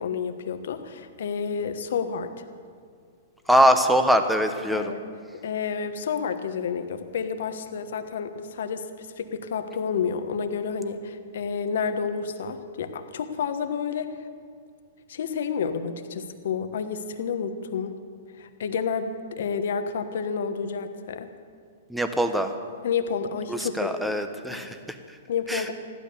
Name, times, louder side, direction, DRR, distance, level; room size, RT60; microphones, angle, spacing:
voice 1, 0.0-2.4 4.7-5.0 5.4-14.2 15.1-18.0 18.3-21.3 22.8-23.9 24.5-24.7 25.3-25.7, left 6 dB, 70° left, 8 dB, 1.2 m, -30 dB
voice 2, 3.5-4.9 21.9-22.5 23.5-25.2 25.5-25.7, equal, ahead, 7 dB, 1.0 m, -23 dB
15.0 x 12.0 x 6.8 m, 2.2 s
hypercardioid pair, 130°, 0 cm